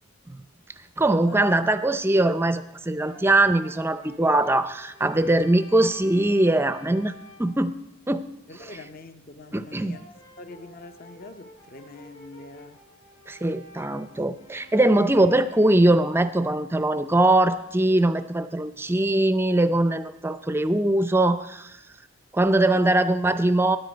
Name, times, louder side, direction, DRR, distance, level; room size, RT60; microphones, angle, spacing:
voice 1, 1.0-7.1 7.4-7.7 8.1-8.3 8.6-8.7 9.5-10.0 13.3-21.8 22.3-23.8, right 1 dB, 10° right, 0.4 m, -21 dB
Brass instrument, 3.0-7.6 9.9-16.3, left 1 dB, 80° left, 6.2 m, -50 dB
voice 2, 8.5-10.0 10.4-12.8 22.7-23.1, left 3 dB, 40° left, 0.6 m, -44 dB
16.0 x 10.0 x 5.1 m
head